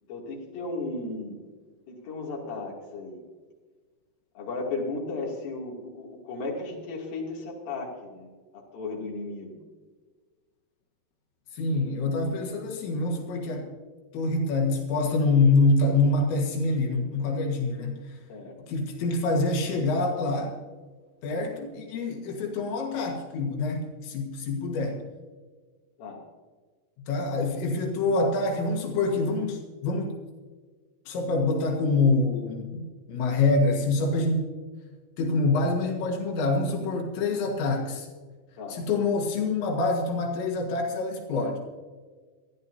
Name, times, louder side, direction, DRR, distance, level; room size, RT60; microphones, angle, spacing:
voice 1, 0.1-1.4 1.9-3.2 4.3-9.6 18.3-18.6 26.0-26.2 38.6-38.8, left 3 dB, 60° left, -2 dB, 4.3 m, -35 dB
voice 2, 11.5-13.7 14.1-18.2 18.7-20.6 21.2-25.0 27.1-30.1 31.1-34.5 35.2-38.1 38.7-41.6, left 3 dB, 85° left, 1 dB, 3.9 m, -26 dB
27.5 x 11.0 x 2.7 m, 1.4 s
omnidirectional pair, 5.1 m